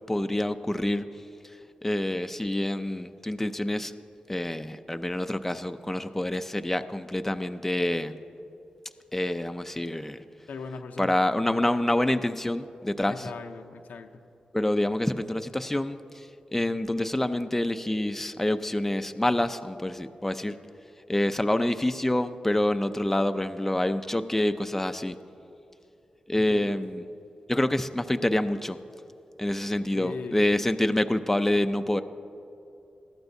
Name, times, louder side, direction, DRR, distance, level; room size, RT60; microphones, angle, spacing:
voice 1, 0.1-1.0 1.8-3.9 4.3-8.2 9.1-10.2 11.0-13.3 14.5-16.3 16.5-20.5 21.1-25.2 26.3-27.1 27.5-28.8 29.4-32.0, left 1 dB, 10° left, 9 dB, 0.4 m, -27 dB
voice 2, 10.5-11.2 13.1-14.1 26.3-26.8 29.9-30.4, left 5 dB, 90° left, 6 dB, 0.6 m, -39 dB
20.0 x 13.5 x 2.7 m, 2.8 s
cardioid pair, 80°, 3 cm